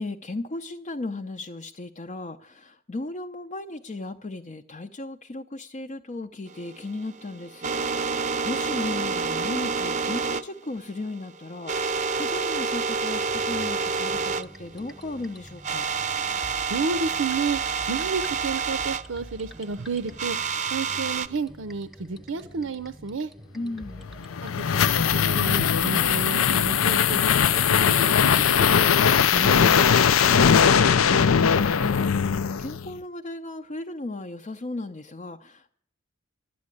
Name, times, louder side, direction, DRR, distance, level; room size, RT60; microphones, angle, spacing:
voice 1, 0.0-7.8 8.0-15.9 23.5-24.1 30.3-35.7, left 2 dB, 35° left, 0.5 m, -35 dB
sound 1, 6.5-14.4 14.7-14.8 15.2-15.3 15.6-19.0 20.2-21.3, right 5 dB, 35° right, 0.6 m, -28 dB
sound 2, 13.1-31.7, equal, ahead, 0.9 m, -46 dB
voice 2, 16.7-20.4 20.7-23.3 24.4-27.2 27.5-30.0, right 4 dB, 80° right, 0.7 m, -31 dB
sound 3, 24.1-32.9, left 7 dB, 90° left, 0.5 m, -20 dB
12.5 x 8.6 x 9.7 m
head